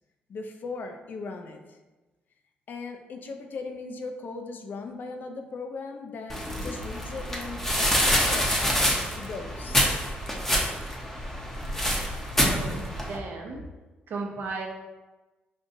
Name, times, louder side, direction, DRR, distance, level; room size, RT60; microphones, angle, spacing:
voice 1, 0.3-1.8 2.7-9.9, left 4 dB, 55° left, 4 dB, 0.5 m, -38 dB
sound 1, 6.3-13.2, equal, 10° left, 0.7 m, -26 dB
voice 2, 12.4-13.6 14.1-14.7, right 3 dB, 60° right, 1 dB, 0.7 m, -35 dB
5.2 x 2.4 x 2.6 m, 1.2 s
cardioid pair, 80°, 4 cm